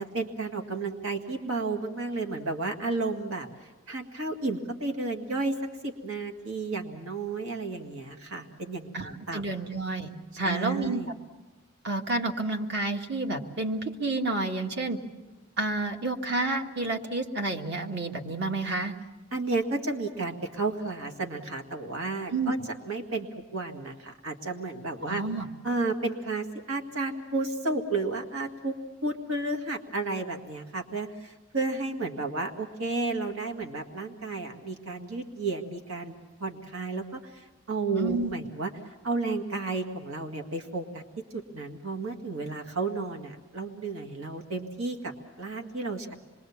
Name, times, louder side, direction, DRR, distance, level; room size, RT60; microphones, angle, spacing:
voice 1, 0.0-3.5 3.9-5.6 5.8-9.4 10.4-11.1 19.3-22.6 22.9-25.2 25.6-28.8 29.0-36.1 36.4-38.7 39.0-41.0 41.3-46.1, right 3 dB, 85° right, 3 dB, 1.9 m, -32 dB
voice 2, 8.9-11.0 11.8-15.0 15.6-18.9 22.3-22.5 25.1-25.5 37.9-38.3, right 2 dB, 55° right, 3 dB, 1.9 m, -30 dB
26.5 x 22.0 x 7.2 m, 1.2 s
head